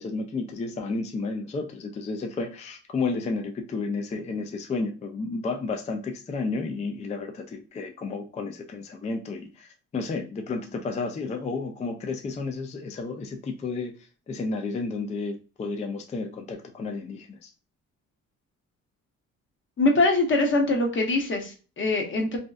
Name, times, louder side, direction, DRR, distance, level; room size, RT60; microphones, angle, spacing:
voice 1, 0.0-17.5, left 3 dB, 25° left, 4 dB, 0.3 m, -32 dB
voice 2, 19.8-22.4, left 2 dB, 40° left, 2 dB, 0.8 m, -23 dB
2.7 x 2.1 x 2.3 m, 0.35 s
cardioid pair, 90°, 30 cm